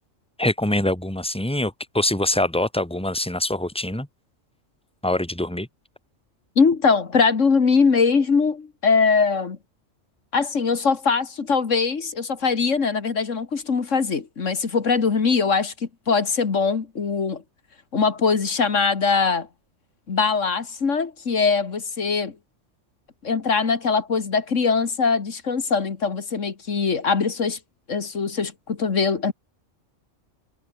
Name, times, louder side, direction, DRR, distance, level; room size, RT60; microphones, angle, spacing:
voice 1, 0.4-4.1 5.0-5.7, left 1 dB, 5° left, 2.6 m, -24 dB
voice 2, 6.6-9.6 10.3-15.7 16.1-17.4 17.9-19.5 20.1-22.3 23.2-27.6 27.9-29.3, left 5 dB, 75° left, 2.2 m, -21 dB
omnidirectional pair, 1.3 m